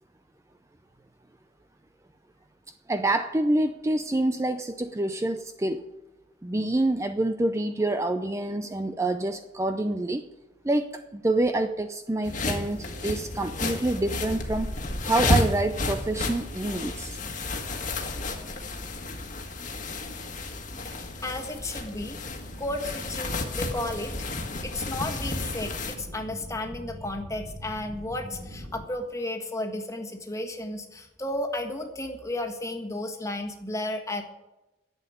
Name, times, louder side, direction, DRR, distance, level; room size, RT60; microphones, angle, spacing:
voice 1, 2.9-5.9 6.4-10.2 10.6-14.7 15.0-17.2, right 2 dB, 15° right, 8 dB, 0.5 m, -27 dB
sound 1, 12.2-25.9, left 2 dB, 45° left, 1.6 m, -31 dB
voice 2, 21.2-24.3 24.6-34.2, left 1 dB, 20° left, 4 dB, 1.5 m, -33 dB
sound 2, 22.5-28.8, equal, 75° right, 3.5 m, -42 dB
11.0 x 7.9 x 9.0 m, 1.0 s
head